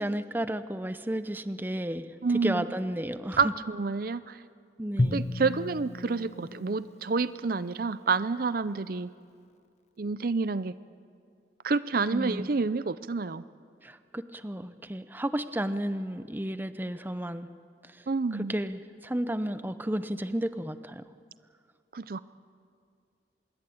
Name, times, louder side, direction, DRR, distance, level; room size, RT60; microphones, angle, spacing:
voice 1, 0.0-3.5 4.8-5.2 12.1-12.5 13.8-17.5 17.8-18.1 18.3-21.0, right 1 dB, 10° right, 12 dB, 0.7 m, -33 dB
voice 2, 2.2-2.6 3.4-4.4 5.1-9.1 10.0-10.8 11.6-13.4 18.1-18.5 21.9-22.2, right 4 dB, 50° right, 15 dB, 0.5 m, -28 dB
Drum, 5.0-7.9, left 1 dB, 40° left, 0.9 m, -33 dB
25.5 x 22.5 x 8.6 m, 2.3 s
head